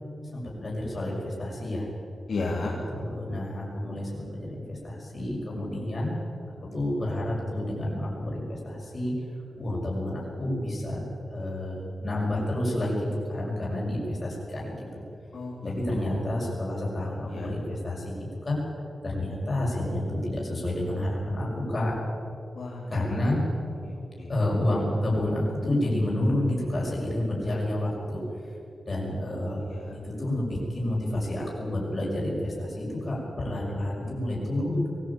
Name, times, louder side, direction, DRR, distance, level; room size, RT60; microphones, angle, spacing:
voice 1, 0.3-1.9 2.7-6.1 6.7-9.1 9.5-11.0 11.3-15.0 15.6-18.2 18.4-18.6 19.0-21.9 22.9-23.4 24.3-28.2 28.8-29.6 30.0-34.9, left 1 dB, 25° left, -4 dB, 6.4 m, -29 dB
voice 2, 2.3-2.7 15.3-16.2 17.3-17.5 22.5-22.9 23.8-24.3 29.7-30.0, left 3 dB, 55° left, -4 dB, 3.1 m, -34 dB
22.5 x 16.5 x 8.7 m, 2.8 s
wide cardioid pair, 175°, 0 cm